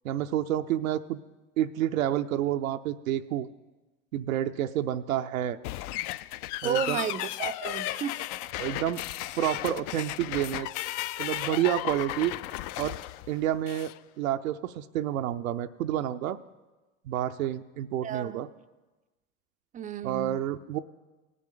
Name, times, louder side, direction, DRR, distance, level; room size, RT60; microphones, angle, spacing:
voice 1, 0.0-1.2 1.6-3.5 4.1-5.6 6.6-7.0 8.6-9.0 9.4-10.7 11.2-12.3 12.8-13.0 13.3-13.9 14.2-16.4 17.1-18.5 20.0-20.8, right 12 dB, 85° right, 7 dB, 0.6 m, -29 dB
sound 1, 5.6-14.0, left 15 dB, 50° left, 0.4 m, -35 dB
voice 2, 6.6-8.2 18.0-18.4 19.7-20.5, right 8 dB, 20° right, 12 dB, 0.4 m, -33 dB
17.5 x 9.8 x 3.8 m, 1.2 s
hypercardioid pair, 90°, 40 cm